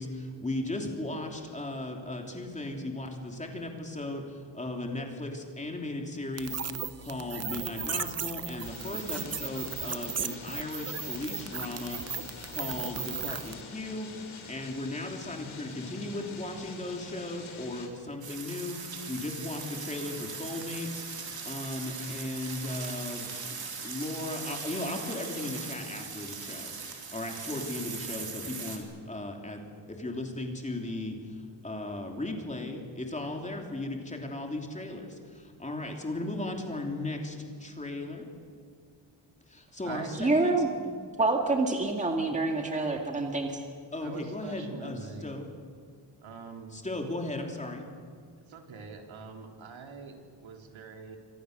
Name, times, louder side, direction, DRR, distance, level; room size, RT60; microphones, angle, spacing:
voice 1, 0.0-6.7 7.0-14.1 14.5-26.7 27.1-29.6 29.9-38.3 39.5-40.5 43.9-45.5 46.7-47.9, left 2 dB, 15° left, 2 dB, 3.2 m, -36 dB
sound 1, 6.4-13.6, right 7 dB, 35° right, 0.8 m, -36 dB
sound 2, 8.6-17.9, left 4 dB, 85° left, 5.1 m, -46 dB
sound 3, 18.2-28.8, right 5 dB, 50° right, 4.2 m, -40 dB
voice 2, 40.2-40.7 41.2-43.6, right 3 dB, 15° right, 3 dB, 1.9 m, -27 dB
voice 3, 44.0-45.3 46.2-46.8 48.4-51.2, right 5 dB, 80° right, 3 dB, 3.6 m, -44 dB
28.0 x 25.0 x 6.7 m, 2.1 s
wide cardioid pair, 175°, 46 cm